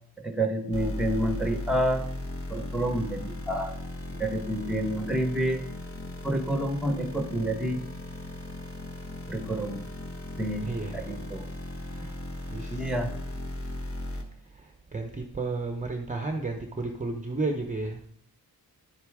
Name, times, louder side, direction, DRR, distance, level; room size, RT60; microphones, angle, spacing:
voice 1, 0.2-2.0 2.5-3.7 4.1-5.6 6.2-7.8 9.3-9.8 10.4-10.7 10.9-11.5 12.7-13.1, right 1 dB, ahead, 5 dB, 1.2 m, -29 dB
sound 1, 0.7-14.2, left 1 dB, 35° left, 1.4 m, -37 dB
voice 2, 10.6-11.1 11.8-12.2 12.5-12.9 14.5-18.0, right 3 dB, 20° right, 3 dB, 0.8 m, -33 dB
10.5 x 8.0 x 3.6 m, 0.64 s
wide cardioid pair, 115°, 39 cm